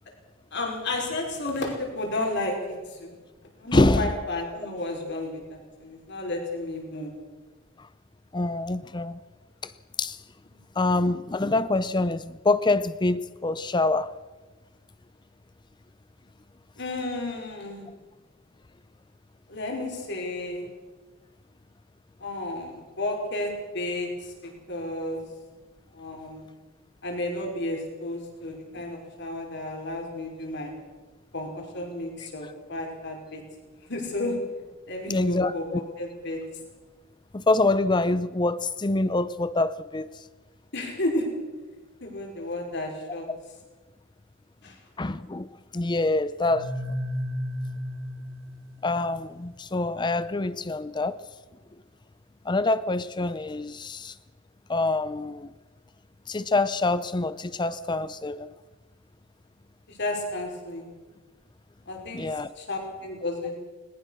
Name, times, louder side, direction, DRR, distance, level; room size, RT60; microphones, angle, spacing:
voice 1, 0.5-3.2 3.6-7.1 10.5-10.6 16.8-17.9 19.5-20.7 22.2-25.2 25.9-26.5 27.0-30.7 31.3-33.4 33.9-34.4 34.9-36.4 40.7-41.3 42.0-43.3 44.6-44.8 59.9-60.9 61.9-62.2 62.6-63.5, left 2 dB, 55° left, 1 dB, 5.3 m, -32 dB
voice 2, 3.7-4.1 8.3-9.2 9.6-9.7 10.0-10.2 10.8-14.1 35.1-35.8 37.3-40.1 45.0-45.5 45.7-46.7 48.8-51.2 52.5-54.1 54.7-55.5 56.3-58.5 62.1-62.5, left 2 dB, 20° left, 15 dB, 0.5 m, -25 dB
sound 1, 46.4-49.3, left 1 dB, 80° right, 1.7 m, -33 dB
20.5 x 20.0 x 6.6 m, 1.3 s
head